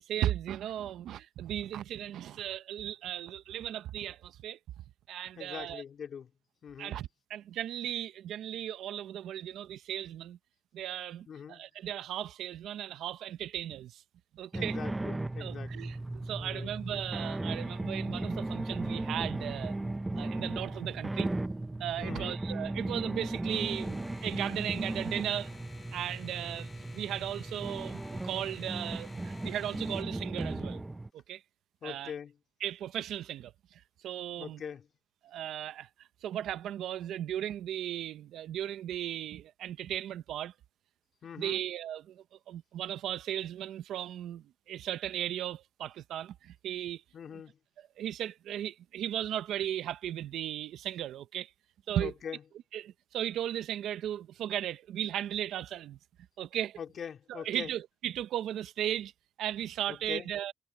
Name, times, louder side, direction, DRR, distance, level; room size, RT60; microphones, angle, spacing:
voice 1, 0.0-4.6 5.1-5.8 6.8-10.4 10.7-14.0 14.3-14.8 15.4-19.8 20.2-21.3 21.8-25.5 25.9-30.8 31.1-31.4 31.8-32.1 32.6-34.6 35.2-40.5 41.4-47.0 47.3-47.4 48.0-51.5 51.9-52.1 52.7-56.0 56.4-56.8 57.3-59.1 59.4-60.5, right 11 dB, 80° right, 0.7 m, -36 dB
voice 2, 5.4-6.3 6.6-7.0 11.3-11.6 14.5-15.7 16.3-17.0 20.1-20.2 22.0-22.4 31.8-32.3 34.4-34.9 41.2-41.6 47.1-47.6 52.0-52.4 56.8-57.7 59.9-60.3, left 7 dB, 55° left, 2.9 m, -42 dB
sound 1, 14.5-31.1, right 2 dB, 15° right, 0.6 m, -36 dB
sound 2, 23.5-30.0, left 4 dB, 30° left, 1.3 m, -52 dB
cardioid pair, 90°, 0 cm